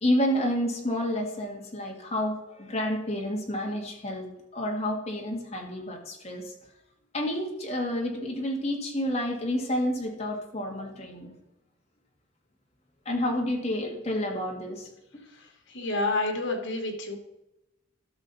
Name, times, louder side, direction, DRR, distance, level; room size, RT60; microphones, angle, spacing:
voice 1, 0.0-4.3 4.5-6.5 7.1-11.3 13.1-14.9, left 1 dB, 30° left, 0 dB, 2.0 m, -29 dB
voice 2, 15.3-17.2, left 2 dB, 70° left, 2 dB, 2.2 m, -29 dB
12.0 x 6.5 x 4.2 m, 0.92 s
head